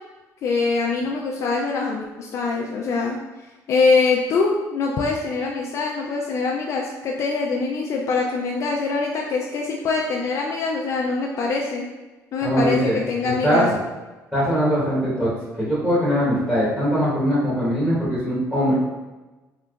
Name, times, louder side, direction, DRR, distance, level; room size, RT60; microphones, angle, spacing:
voice 1, 0.4-3.2 3.7-11.8 12.3-13.7, left 4 dB, 55° left, -1 dB, 0.3 m, -23 dB
voice 2, 12.4-13.6 14.3-15.3 15.6-18.7, equal, 5° right, -10 dB, 1.1 m, -21 dB
3.3 x 2.8 x 2.3 m, 1.2 s
cardioid pair, 120°, 6 cm